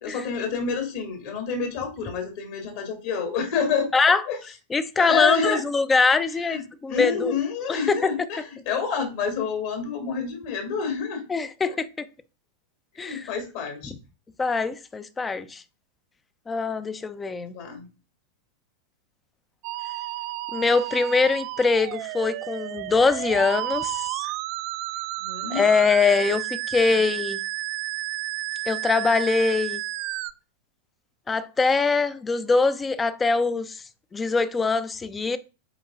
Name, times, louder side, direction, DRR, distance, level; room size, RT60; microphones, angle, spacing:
voice 1, 0.0-3.9 4.3-4.4 5.0-5.6 6.4-6.6 6.9-11.2 11.7-11.8 13.0-13.9 17.5-17.9 25.2-25.6, left 6 dB, 55° left, 2.5 m, -28 dB
voice 2, 3.9-4.2 4.7-7.3 7.7-8.1 11.3-11.9 13.0-13.3 13.9-14.0 14.4-15.6 16.5-17.5 20.5-24.0 25.5-27.4 28.7-29.8 31.3-33.8 34.1-35.4, left 4 dB, 15° left, 0.8 m, -23 dB
Musical instrument, 19.6-30.3, right 17 dB, 45° right, 0.4 m, -32 dB
8.3 x 4.8 x 3.7 m
figure-of-eight pair, 90°, 0 cm